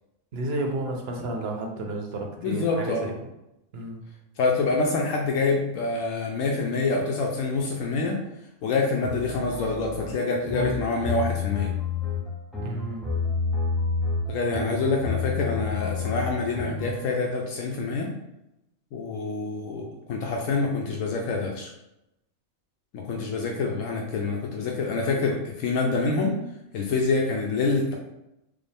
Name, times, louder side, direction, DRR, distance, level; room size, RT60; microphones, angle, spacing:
voice 1, 0.3-3.1 3.7-4.0 12.6-13.2, right 2 dB, 55° right, 2 dB, 0.9 m, -32 dB
voice 2, 2.4-3.1 4.4-8.2 8.6-11.7 14.3-18.1 18.9-21.7 22.9-26.4 26.7-28.0, left 3 dB, 80° left, 0 dB, 0.9 m, -26 dB
sound 1, 9.0-16.9, left 5 dB, ahead, 0.4 m, -29 dB
5.1 x 2.0 x 3.3 m, 0.89 s
omnidirectional pair, 1.4 m